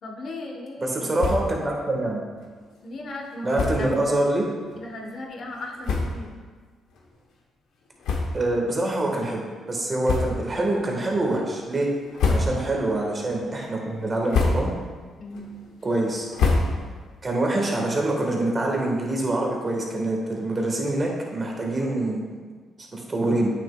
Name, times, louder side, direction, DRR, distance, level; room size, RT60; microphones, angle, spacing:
voice 1, 0.0-1.3 2.8-4.1 4.7-6.3 12.4-12.6 15.2-15.6, left 2 dB, 55° left, 1 dB, 1.0 m, -36 dB
voice 2, 0.8-2.2 3.4-4.4 8.3-11.9 12.3-14.7 15.8-16.3 17.2-22.4 22.9-23.5, right 2 dB, 30° right, 0 dB, 1.4 m, -25 dB
sound 1, 1.1-1.6 2.0-2.1 2.4-2.5 3.5-4.0 4.7-4.8 5.5-5.6 5.8-6.4 6.9-7.0 8.0-8.7 9.0-9.2 10.0-10.6 11.1-11.5 12.0-12.9 13.2-13.7 14.1-14.9 15.3-17.1, left 3 dB, 80° left, 0.9 m, -26 dB
8.5 x 6.4 x 2.3 m, 1.5 s
cardioid pair, 90°, 0 cm